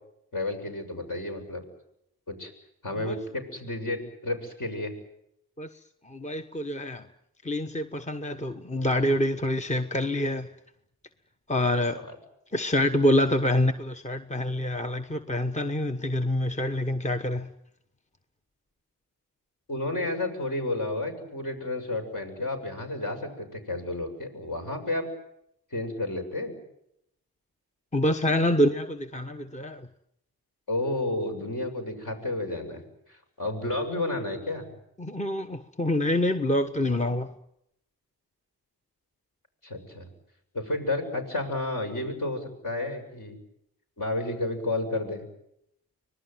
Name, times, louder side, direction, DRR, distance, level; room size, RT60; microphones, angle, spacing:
voice 1, 0.3-1.6 2.3-2.5 2.8-4.9 11.9-12.2 19.7-25.1 25.7-26.5 30.7-32.8 33.1-34.7 39.6-40.1 40.5-43.4 44.0-45.3, left 2 dB, 55° left, 4 dB, 7.2 m, -31 dB
voice 2, 6.1-7.0 7.4-10.5 11.5-12.0 12.5-17.5 27.9-29.9 35.0-37.3, left 1 dB, 20° left, 8 dB, 1.1 m, -26 dB
25.0 x 19.0 x 9.3 m, 0.79 s
cardioid pair, 70°, 39 cm